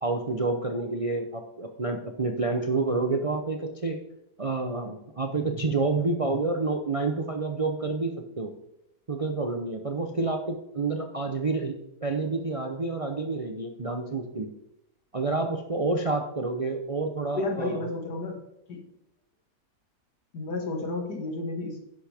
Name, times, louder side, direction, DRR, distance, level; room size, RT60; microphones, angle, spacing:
voice 1, 0.0-4.0 4.4-8.5 9.1-14.5 15.1-17.8, right 3 dB, 55° right, 4 dB, 0.3 m, -29 dB
voice 2, 17.3-18.4 18.7-18.8 20.3-21.9, left 2 dB, 70° left, 2 dB, 2.3 m, -31 dB
11.0 x 10.5 x 3.5 m, 0.84 s
omnidirectional pair, 1.8 m